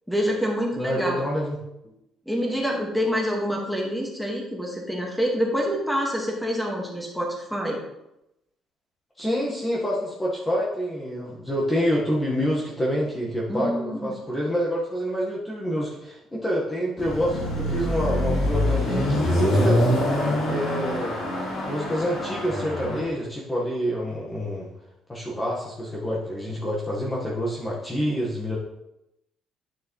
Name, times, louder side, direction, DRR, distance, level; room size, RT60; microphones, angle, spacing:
voice 1, 0.1-1.2 2.3-7.8 13.5-14.1, equal, ahead, -1 dB, 1.7 m, -26 dB
voice 2, 0.8-1.6 9.2-19.9 20.5-21.2 21.7-24.7 25.1-28.6, equal, 15° left, -4 dB, 1.5 m, -27 dB
Car passing by / Accelerating revving vroom, 17.0-23.0, left 1 dB, 75° left, 2.9 m, -24 dB
9.5 x 6.2 x 3.2 m, 0.87 s
cardioid pair, 115°, 0 cm